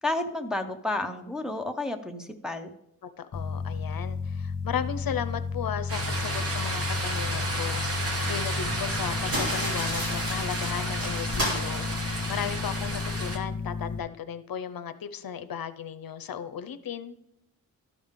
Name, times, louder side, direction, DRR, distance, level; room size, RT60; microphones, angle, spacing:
voice 1, 0.0-2.7, left 2 dB, ahead, 0.6 m, -31 dB
voice 2, 3.2-17.2, left 8 dB, 70° left, 0.6 m, -36 dB
sound 1, 3.3-14.0, left 5 dB, 50° left, 1.0 m, -33 dB
sound 2, 5.9-13.4, right 2 dB, 40° right, 1.2 m, -32 dB
sound 3, 9.3-12.7, equal, 75° right, 2.6 m, -34 dB
13.0 x 5.1 x 3.6 m
wide cardioid pair, 140°, 36 cm